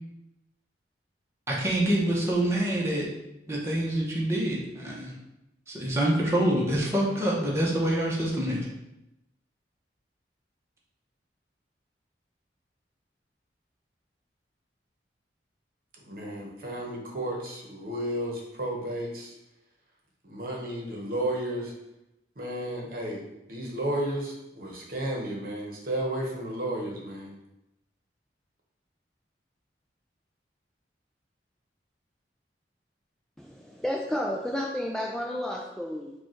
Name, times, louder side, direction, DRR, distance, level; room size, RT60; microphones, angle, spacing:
voice 1, 1.5-3.1 3.5-5.1 5.7-8.7, right 1 dB, 15° right, -4 dB, 0.9 m, -26 dB
voice 2, 16.0-19.3 20.2-21.7 22.4-23.2 23.5-27.3, right 1 dB, 55° right, -1 dB, 1.0 m, -33 dB
voice 3, 33.4-36.1, left 1 dB, 5° left, -2 dB, 0.3 m, -31 dB
5.0 x 2.4 x 4.4 m, 0.90 s
head